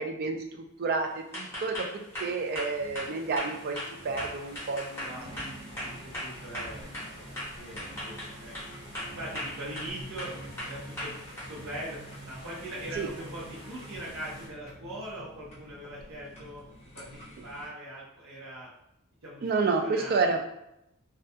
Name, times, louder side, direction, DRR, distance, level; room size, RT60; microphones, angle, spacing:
voice 1, 0.0-5.8 13.0-13.1 19.4-20.4, right 4 dB, 45° right, 4 dB, 0.3 m, -30 dB
sound 1, 1.0-14.5, right 1 dB, 15° right, 1.0 m, -47 dB
sound 2, 1.3-7.1 7.4-8.7 8.9-9.9 10.2-11.5, equal, 10° left, 0.9 m, -37 dB
sound 3, 5.0-17.7, left 1 dB, 30° left, 0.6 m, -50 dB
voice 2, 5.0-7.3 7.5-8.5 9.2-10.3 10.6-11.2 11.5-12.0 12.3-16.6 16.9-18.7 19.2-20.3, right 1 dB, 80° right, -6 dB, 0.7 m, -42 dB
2.3 x 2.2 x 2.6 m, 0.81 s
head